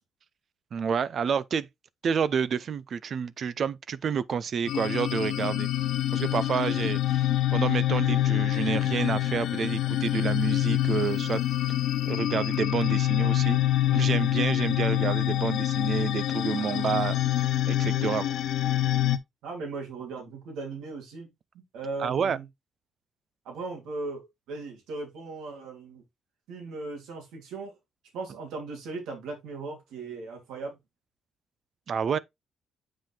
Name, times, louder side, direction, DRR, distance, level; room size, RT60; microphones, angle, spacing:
voice 1, 0.7-1.7 2.0-5.7 6.1-11.4 12.0-13.6 13.9-17.2 17.7-18.3 22.0-22.4 31.9-32.2, right 6 dB, 55° right, 0.5 m, -29 dB
sound 1, 4.7-19.2, left 13 dB, 75° left, 0.6 m, -26 dB
voice 2, 19.4-21.3 21.5-22.4 23.4-26.0 26.5-27.8 28.1-30.8, right 3 dB, 90° right, 3.0 m, -38 dB
7.5 x 5.1 x 3.4 m
cardioid pair, 90°, 0 cm